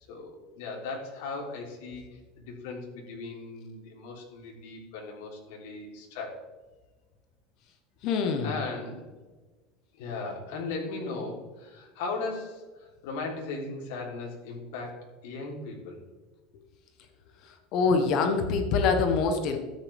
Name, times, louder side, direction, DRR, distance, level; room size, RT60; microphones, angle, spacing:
voice 1, 0.1-6.4 8.4-9.1 9.9-16.0, left 3 dB, 80° left, -1 dB, 3.5 m, -37 dB
voice 2, 8.0-8.6 17.4-19.6, left 4 dB, 45° left, 6 dB, 1.2 m, -25 dB
13.0 x 9.6 x 3.5 m, 1.2 s
cardioid pair, 170°, 0 cm